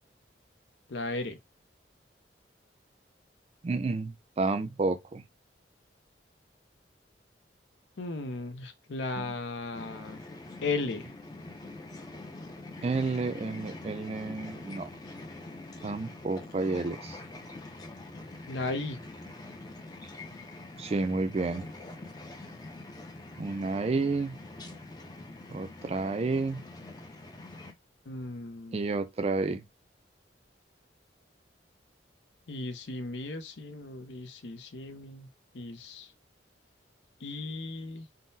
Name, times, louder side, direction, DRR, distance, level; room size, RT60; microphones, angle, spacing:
voice 1, 0.9-1.4 8.0-10.2 10.6-11.1 18.5-19.0 28.1-28.8 32.5-35.3 35.5-36.1 37.2-38.0, left 3 dB, 85° left, 0.6 m, -36 dB
voice 2, 3.6-5.2 9.2-9.3 12.8-14.9 15.8-17.2 20.8-21.7 23.4-24.4 25.5-26.6 28.7-29.6, right 3 dB, 35° right, 0.3 m, -30 dB
sound 1, 9.7-27.7, left 2 dB, 20° left, 0.5 m, -45 dB
3.7 x 2.1 x 2.6 m
head